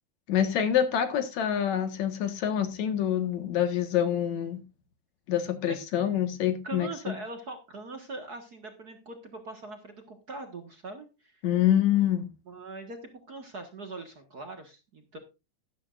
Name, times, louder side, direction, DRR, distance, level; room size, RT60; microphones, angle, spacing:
voice 1, 0.3-4.6 5.3-7.1 11.4-12.3, left 10 dB, 70° left, 2.8 m, -26 dB
voice 2, 6.6-11.4 12.5-15.2, right 3 dB, 40° right, 1.7 m, -41 dB
13.0 x 12.5 x 2.5 m
omnidirectional pair, 3.3 m